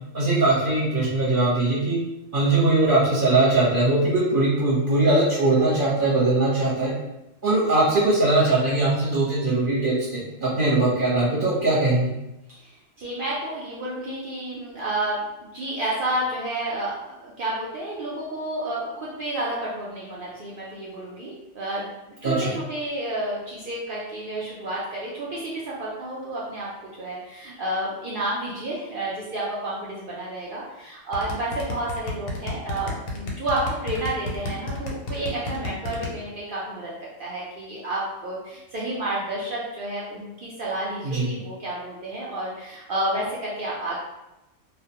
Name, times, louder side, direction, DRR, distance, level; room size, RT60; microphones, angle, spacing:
voice 1, 0.1-2.0 2.3-6.9 7.4-12.1 22.2-22.5 41.0-41.3, right 2 dB, 45° right, -8 dB, 0.8 m, -21 dB
voice 2, 12.5-21.9 22.2-44.0, right 1 dB, 75° right, -6 dB, 0.5 m, -30 dB
sound 1, 31.1-36.1, left 2 dB, 90° left, 1.1 m, -30 dB
2.3 x 2.1 x 2.7 m, 0.91 s
omnidirectional pair, 1.5 m